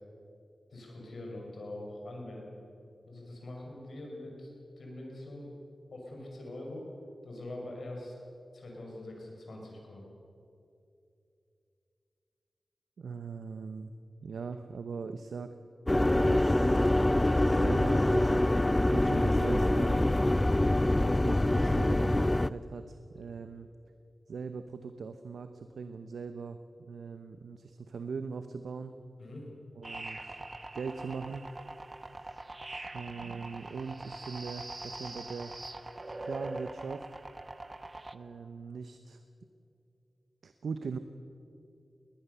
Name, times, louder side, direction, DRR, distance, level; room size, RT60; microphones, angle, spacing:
voice 1, 0.7-2.7 3.1-4.5 4.8-5.5 5.9-6.8 7.2-8.1 8.5-10.0 20.5-20.8 29.2-29.5, left 1 dB, 75° left, -1 dB, 6.1 m, -43 dB
voice 2, 13.0-13.9 14.2-15.5 16.1-16.9 17.4-20.1 21.0-23.7 24.3-28.9 29.8-30.4 30.7-31.5 32.9-35.5 36.2-37.1 38.1-39.2 40.4-41.0, right 5 dB, 85° right, 9 dB, 0.8 m, -40 dB
sound 1, 15.9-22.5, left 1 dB, 20° left, 0.5 m, -25 dB
sound 2, 29.8-38.1, right 2 dB, 35° right, 1.0 m, -43 dB
20.5 x 19.5 x 6.9 m, 2.7 s
cardioid pair, 50°, 0 cm